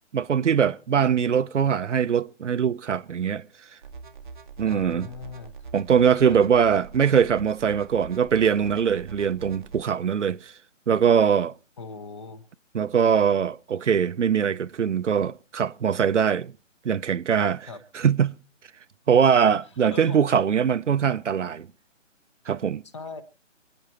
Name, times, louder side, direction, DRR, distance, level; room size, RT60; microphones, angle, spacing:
voice 1, 0.1-3.4 4.6-5.1 5.7-10.5 10.9-11.5 12.7-16.5 16.8-17.7 17.9-18.4 19.1-21.7 22.5-22.8, right 7 dB, 65° right, 0.7 m, -22 dB
sound 1, 3.8-9.8, right 4 dB, 40° right, 0.8 m, -43 dB
voice 2, 4.6-5.6 6.0-6.5 11.8-12.4 17.7-17.8 19.9-20.2 22.9-23.2, left 4 dB, 25° left, 1.0 m, -39 dB
28.5 x 9.6 x 2.9 m
figure-of-eight pair, 155°, 38 cm